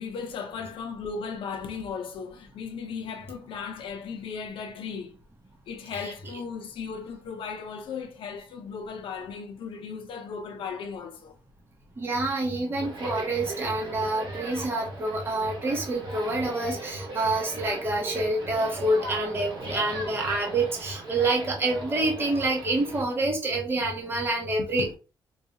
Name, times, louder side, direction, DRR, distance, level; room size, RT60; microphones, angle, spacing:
voice 1, 0.0-5.2 5.7-11.4 24.6-25.0, left 5 dB, 75° left, 0.6 m, -36 dB
voice 2, 12.0-24.8, right 2 dB, 25° right, 0.8 m, -27 dB
sound 1, 12.8-23.0, right 2 dB, 65° right, 1.3 m, -38 dB
4.0 x 2.3 x 2.8 m
wide cardioid pair, 165°, 9 cm